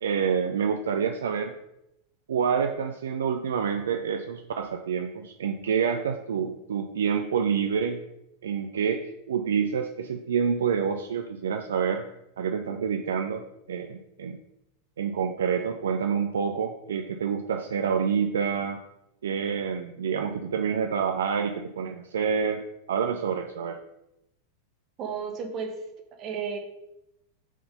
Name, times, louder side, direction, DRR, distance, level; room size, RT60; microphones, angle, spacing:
voice 1, 0.0-1.5 2.3-8.0 8.4-12.0 12.4-13.4 13.7-14.4 15.0-18.8 19.2-23.8, right 7 dB, 65° right, 5 dB, 0.4 m, -27 dB
voice 2, 25.0-25.8 26.2-26.6, right 6 dB, 35° right, 4 dB, 1.2 m, -32 dB
6.1 x 3.9 x 5.2 m, 0.87 s
figure-of-eight pair, 90°, 0 cm